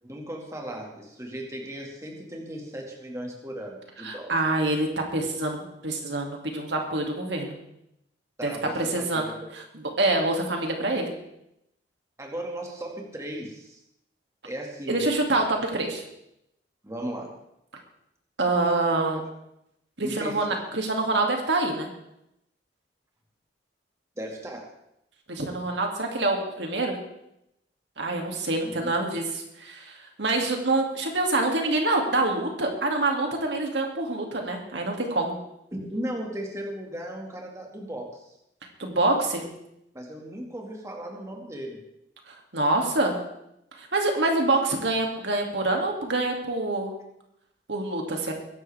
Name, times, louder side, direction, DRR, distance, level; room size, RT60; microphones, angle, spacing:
voice 1, 0.0-4.3 8.4-9.5 12.2-13.8 14.4-15.0 16.8-17.3 20.0-20.4 24.2-24.7 28.6-28.9 35.7-38.3 39.9-41.8, right 1 dB, 15° right, 0 dB, 2.0 m, -36 dB
voice 2, 4.0-7.6 8.4-8.5 8.7-9.3 10.0-11.1 14.9-16.0 18.4-19.2 20.0-21.9 25.3-27.0 28.0-35.4 38.8-39.4 42.3-43.1 43.8-46.9 47.7-48.3, right 2 dB, 75° right, 2 dB, 2.5 m, -26 dB
22.0 x 11.0 x 3.5 m, 0.81 s
head